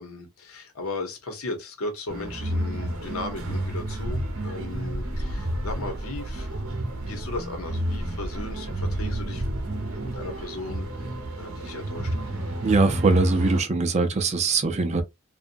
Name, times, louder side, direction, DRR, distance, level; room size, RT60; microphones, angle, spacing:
voice 1, 0.0-10.9 11.4-12.1, left 2 dB, 75° left, 0.9 m, -36 dB
sound 1, 2.1-13.6, right 1 dB, 70° right, 0.8 m, -30 dB
voice 2, 12.6-15.0, right 3 dB, 30° right, 0.5 m, -22 dB
2.7 x 2.3 x 2.5 m
head